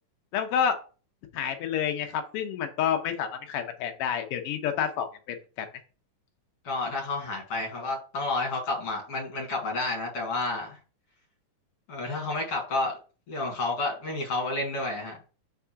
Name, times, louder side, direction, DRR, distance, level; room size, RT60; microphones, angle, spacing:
voice 1, 0.3-0.8 1.3-5.7, left 8 dB, 85° left, 5 dB, 1.2 m, -29 dB
voice 2, 6.6-10.8 11.9-12.9 13.3-15.3, left 2 dB, 50° left, 0 dB, 2.7 m, -30 dB
4.8 x 3.6 x 5.6 m, 0.36 s
omnidirectional pair, 3.7 m